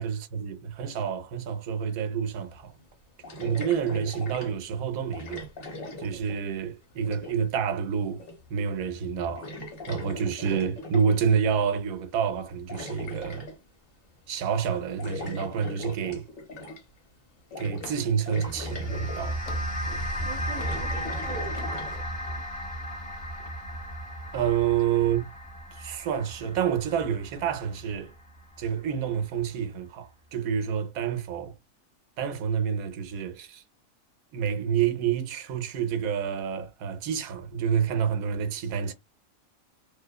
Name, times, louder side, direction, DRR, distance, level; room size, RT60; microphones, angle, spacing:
voice 1, 0.0-2.7 3.4-5.5 6.0-8.2 8.5-9.5 9.9-13.5 14.3-16.3 17.6-19.6 19.9-20.1 24.3-25.3 25.7-28.1 28.6-31.5 32.2-33.6 34.3-38.9, right 7 dB, 85° right, 1.1 m, -28 dB
sound 1, 2.3-2.4 3.2-4.6 5.1-6.6 6.9-7.5 8.2-8.6 8.9-9.0 9.4-11.2 12.3-13.6 15.0-17.0 17.5-18.0 18.3-19.4 20.1-22.0, left 2 dB, 50° left, 1.1 m, -40 dB
sound 2, 17.8-18.2 18.7-20.1 20.6-21.3 21.6-21.8, left 6 dB, 65° left, 0.7 m, -48 dB
sound 3, 18.3-28.9, equal, 5° left, 0.8 m, -35 dB
voice 2, 20.2-22.4, right 5 dB, 60° right, 0.6 m, -42 dB
2.7 x 2.1 x 2.2 m
omnidirectional pair, 1.4 m